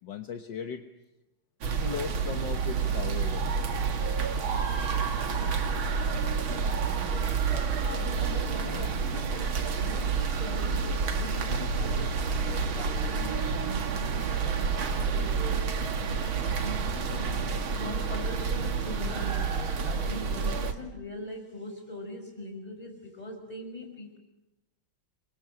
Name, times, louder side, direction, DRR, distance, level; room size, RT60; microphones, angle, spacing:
voice 1, 0.0-0.9 1.8-3.6 7.5-8.9 10.0-10.1 12.8-12.9, left 7 dB, 65° left, 6 dB, 1.8 m, -39 dB
sound 1, 1.6-20.7, right 5 dB, 75° right, 2.5 m, -29 dB
voice 2, 7.1-15.7 16.2-17.5 17.7-24.2, left 1 dB, 20° left, 3 dB, 6.0 m, -41 dB
27.5 x 24.0 x 7.9 m, 0.97 s
omnidirectional pair, 2.2 m